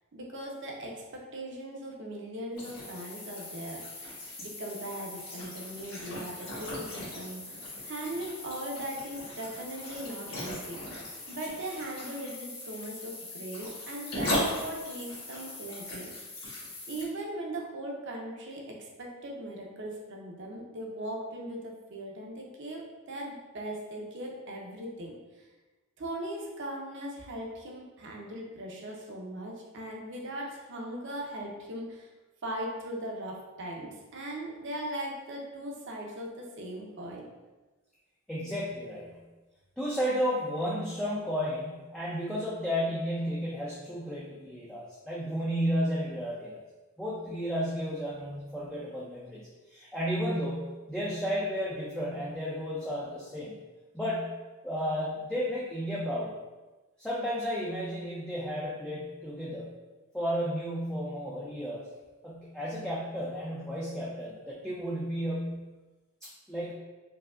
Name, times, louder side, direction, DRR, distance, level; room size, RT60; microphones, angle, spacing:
voice 1, 0.1-10.8 11.3-16.1 16.9-25.5 26.0-32.1 32.4-37.3, right 1 dB, 55° right, -1 dB, 0.7 m, -39 dB
sound 1, 2.5-17.0, left 1 dB, 70° left, 1.3 m, -38 dB
voice 2, 38.3-39.2 39.8-46.6 47.0-49.4 49.7-53.5 53.9-54.3 54.6-56.3 57.0-59.7 60.1-61.8 62.2-65.6 66.2-66.7, equal, 5° left, -7 dB, 0.4 m, -33 dB
4.7 x 2.8 x 2.4 m, 1.2 s
head